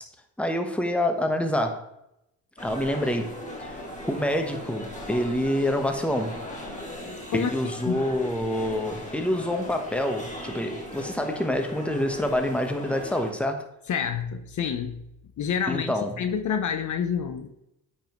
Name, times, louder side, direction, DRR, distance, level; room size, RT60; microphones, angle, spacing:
voice 1, 0.4-1.9 2.6-3.3 3.6-3.8 4.1-6.3 7.3-13.7 15.7-16.2, left 1 dB, 5° left, 5 dB, 1.2 m, -27 dB
sound 1, 2.6-13.3, left 1 dB, 20° left, 2.2 m, -38 dB
voice 2, 13.9-15.0 15.4-17.5, left 7 dB, 50° left, 8 dB, 0.8 m, -28 dB
8.6 x 5.5 x 3.1 m, 0.83 s
supercardioid pair, 65°, 37 cm